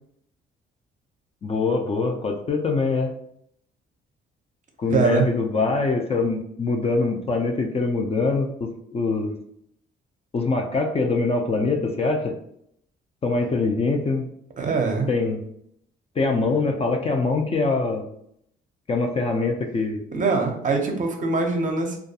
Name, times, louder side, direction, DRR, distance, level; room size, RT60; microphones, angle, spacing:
voice 1, 1.4-3.1 4.8-9.3 10.3-12.3 13.2-14.3 15.1-15.4 16.2-18.1 18.9-20.0, left 3 dB, 30° left, 3 dB, 0.4 m, -23 dB
voice 2, 4.9-5.3 14.6-15.1 20.1-22.0, right 4 dB, 40° right, 3 dB, 0.6 m, -23 dB
2.3 x 2.2 x 2.7 m, 0.71 s
cardioid pair, 90°, 20 cm